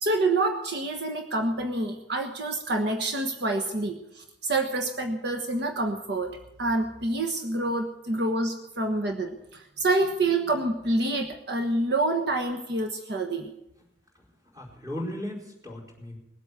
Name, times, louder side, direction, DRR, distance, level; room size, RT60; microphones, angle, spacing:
voice 1, 0.0-13.5, right 2 dB, 65° right, 4 dB, 1.3 m, -27 dB
voice 2, 14.2-16.2, left 1 dB, 20° right, -3 dB, 4.7 m, -37 dB
20.5 x 8.4 x 8.2 m, 0.87 s
head